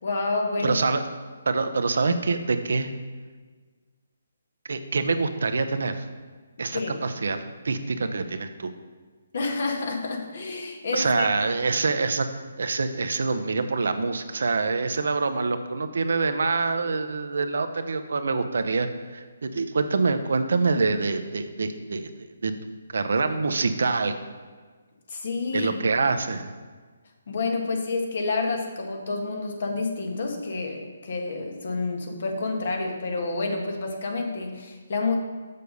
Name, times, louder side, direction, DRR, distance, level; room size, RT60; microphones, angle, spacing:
voice 1, 0.0-0.8 6.7-7.0 9.3-11.3 25.1-25.8 27.3-35.2, left 3 dB, 60° left, 2 dB, 1.7 m, -29 dB
voice 2, 0.6-1.0 1.5-2.9 4.7-6.1 6.6-8.7 10.9-12.3 12.6-18.9 19.1-22.1 22.4-22.5 22.9-24.1 25.5-26.5, right 4 dB, 70° right, 9 dB, 0.7 m, -25 dB
6.7 x 6.7 x 5.3 m, 1.5 s
hypercardioid pair, 155°, 0 cm